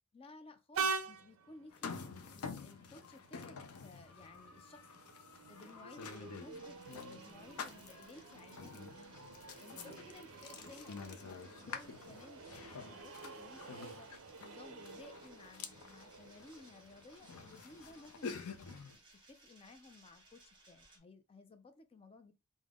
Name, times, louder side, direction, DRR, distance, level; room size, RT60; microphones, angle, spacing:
voice 1, 0.1-5.0 5.5-9.2 9.6-14.1 14.4-19.0 19.3-22.3, left 2 dB, 25° left, 0.4 m, -57 dB
Train, 0.7-18.0, right 5 dB, 60° right, 0.4 m, -47 dB
sound 1, 1.7-18.9, left 5 dB, 80° left, 0.5 m, -49 dB
sound 2, 6.0-21.0, right 2 dB, 20° right, 1.1 m, -64 dB
3.5 x 2.1 x 3.5 m
head